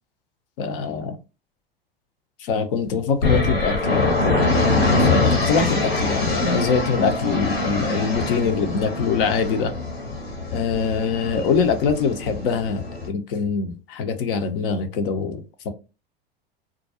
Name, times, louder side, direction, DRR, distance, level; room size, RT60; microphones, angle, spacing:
voice 1, 0.6-1.2 2.4-4.4 5.0-9.7 10.5-15.7, left 5 dB, 65° left, 0.8 m, -23 dB
sound 1, 3.2-13.1, left 3 dB, 85° left, 1.2 m, -23 dB
2.4 x 2.2 x 2.7 m
hypercardioid pair, 95°, 30 cm